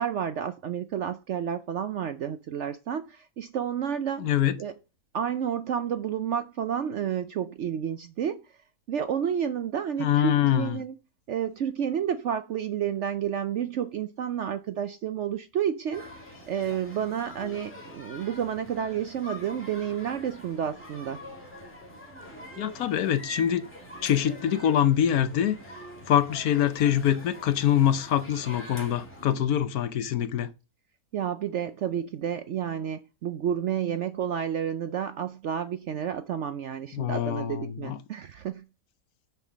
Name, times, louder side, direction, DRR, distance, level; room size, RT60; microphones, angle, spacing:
voice 1, 0.0-4.3 4.6-4.7 5.1-8.4 8.9-10.9 11.3-16.1 16.5-21.2 31.1-38.6, right 8 dB, 65° right, 0.7 m, -30 dB
voice 2, 4.2-4.5 10.0-10.8 22.6-23.7 24.0-25.6 26.1-30.5 36.9-38.0, left 10 dB, 70° left, 1.1 m, -24 dB
sound 1, 15.9-29.4, left 1 dB, 5° left, 2.4 m, -44 dB
7.2 x 5.6 x 6.2 m
omnidirectional pair, 1.7 m